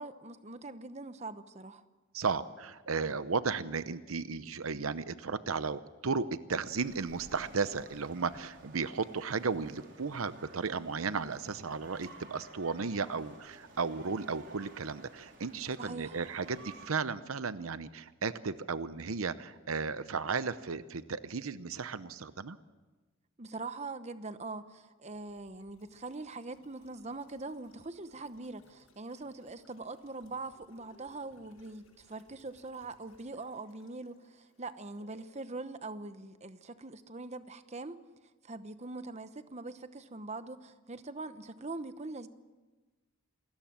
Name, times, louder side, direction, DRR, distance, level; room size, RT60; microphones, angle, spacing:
voice 1, 0.0-1.8 15.8-16.2 23.4-38.0 38.4-42.3, right 3 dB, 30° right, 11 dB, 0.9 m, -43 dB
voice 2, 2.1-22.6, right 5 dB, 80° right, 13 dB, 0.8 m, -34 dB
sound 1, 6.7-16.9, right 3 dB, 60° right, 4.7 m, -54 dB
sound 2, 25.1-35.4 35.7-35.8, left 2 dB, 85° left, 7.0 m, -66 dB
27.5 x 20.5 x 7.5 m, 1.2 s
head